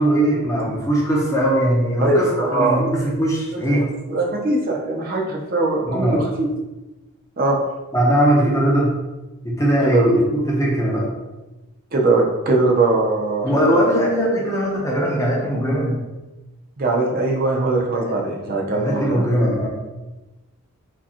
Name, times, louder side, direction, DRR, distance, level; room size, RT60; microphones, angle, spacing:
voice 1, 0.0-3.9 5.9-6.2 7.9-8.9 9.4-11.1 13.4-16.0 17.9-18.1 18.7-19.7, right 1 dB, 15° left, -4 dB, 0.7 m, -20 dB
voice 2, 2.0-2.8 3.5-6.5 7.4-7.6 9.8-10.1 11.9-13.8 16.8-19.3, right 2 dB, 40° right, 0 dB, 0.6 m, -21 dB
4.9 x 2.3 x 2.8 m, 1.1 s
head